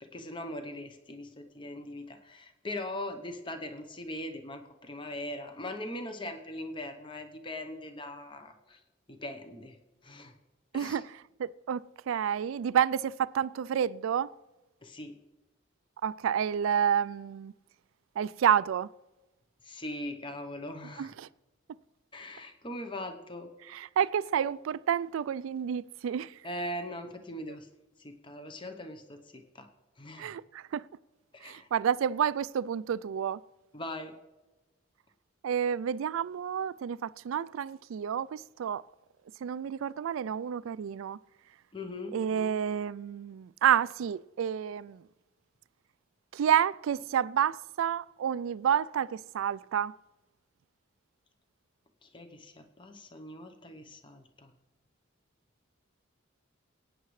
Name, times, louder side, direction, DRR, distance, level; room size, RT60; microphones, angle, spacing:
voice 1, 0.0-8.8 9.1-9.8 10.0-10.3 10.7-11.0 14.8-15.2 19.6-21.1 22.1-23.5 26.4-27.7 28.0-29.7 30.0-30.3 31.3-31.7 33.7-34.2 41.7-42.2 52.0-54.5, left 1 dB, 25° left, 0.9 m, -40 dB
voice 2, 10.7-14.3 16.0-17.5 18.2-18.9 21.0-21.3 21.7-21.8 23.7-26.4 30.2-30.9 31.4-33.4 35.4-38.8 39.4-41.2 42.1-45.1 46.3-49.9, right 8 dB, 80° right, 0.3 m, -29 dB
21.5 x 9.4 x 3.2 m
head